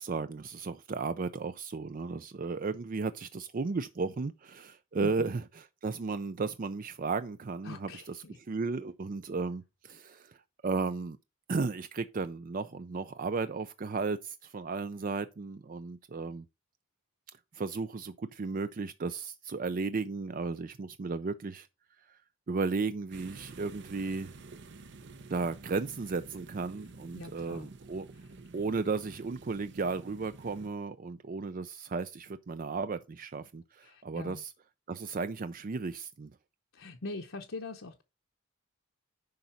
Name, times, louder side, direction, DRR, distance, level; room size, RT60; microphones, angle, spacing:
voice 1, 0.0-11.2 11.5-16.5 17.5-21.7 22.0-22.2 22.5-24.3 25.3-28.1 28.5-34.5 34.9-36.3, right 4 dB, 40° right, 0.4 m, -34 dB
voice 2, 5.0-5.3 7.6-8.4 27.2-27.7 33.8-34.4 36.7-38.0, left 3 dB, 65° left, 0.9 m, -42 dB
sound 1, 23.1-30.7, right 3 dB, 55° right, 0.8 m, -50 dB
10.5 x 3.9 x 5.7 m
head